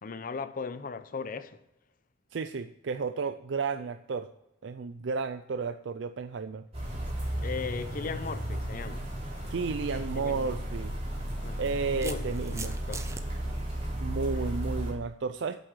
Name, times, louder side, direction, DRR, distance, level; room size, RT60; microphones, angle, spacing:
voice 1, 0.0-1.6 7.4-9.1 10.1-10.6 11.4-11.6 11.9-13.1 14.4-14.5, left 5 dB, 45° left, 0.6 m, -38 dB
voice 2, 2.3-4.3 4.6-6.7 9.5-11.0 11.6-12.8 14.0-15.6, right 4 dB, 65° right, 0.4 m, -32 dB
sound 1, 6.7-14.9, equal, 35° right, 3.8 m, -34 dB
sound 2, 11.4-13.2, right 4 dB, 15° right, 0.6 m, -41 dB
8.5 x 7.9 x 6.3 m
head